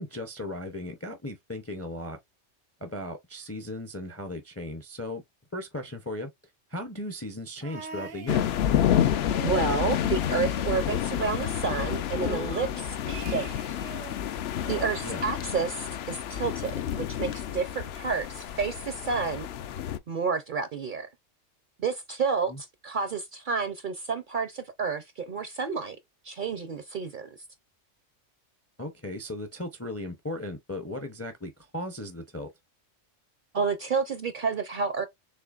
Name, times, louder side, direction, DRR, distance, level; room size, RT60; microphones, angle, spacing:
voice 1, 0.0-2.2 2.8-5.2 5.5-6.3 6.7-8.5 15.0-15.2 22.5-22.6 28.8-32.5, left 1 dB, 20° left, 0.4 m, -36 dB
sound 1, 7.6-8.9 9.2-11.1 11.4-11.5 11.8-14.2 14.6-15.9 16.7-16.8, right 5 dB, 80° right, 1.2 m, -43 dB
sound 2, 8.3-20.0, left 10 dB, 65° left, 0.7 m, -29 dB
voice 2, 9.4-13.8 14.7-19.5 20.1-21.1 21.8-26.0 26.2-27.3 33.5-35.1, right 5 dB, 55° right, 0.6 m, -30 dB
6.7 x 2.8 x 2.4 m
omnidirectional pair, 1.3 m